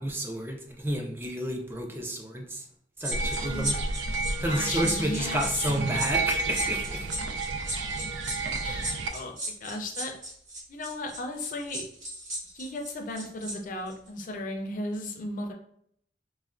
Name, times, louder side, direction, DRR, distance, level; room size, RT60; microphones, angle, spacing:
voice 1, 0.0-2.6 3.0-3.8 4.4-7.1, right 1 dB, 15° right, 1 dB, 0.4 m, -31 dB
sound 1, 3.0-13.5 13.9-14.1, right 1 dB, 45° right, 1.4 m, -35 dB
sound 2, 3.1-9.1, right 3 dB, 90° right, 0.3 m, -31 dB
voice 2, 3.4-3.8 4.4-6.1 8.6-9.4 9.6-10.1 10.7-11.8 12.5-15.5, left 2 dB, 50° left, 3 dB, 0.4 m, -35 dB
3.3 x 2.1 x 2.4 m, 0.66 s
head